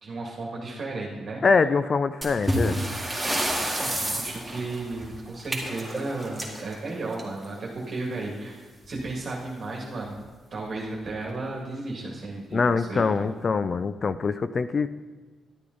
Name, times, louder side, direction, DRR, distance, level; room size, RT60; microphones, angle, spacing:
voice 1, 0.0-1.4 3.6-8.6 8.9-10.2 10.5-13.3, right 2 dB, 50° right, -3 dB, 2.0 m, -34 dB
voice 2, 1.4-2.8 12.5-14.9, left 4 dB, 45° left, 13 dB, 0.4 m, -24 dB
sound 1, 2.2-7.6 8.8-9.0 9.3-9.4 10.1-10.2 10.8-11.1, right 1 dB, 5° right, 2.0 m, -30 dB
12.0 x 8.4 x 3.9 m, 1.3 s
cardioid pair, 80°, 0 cm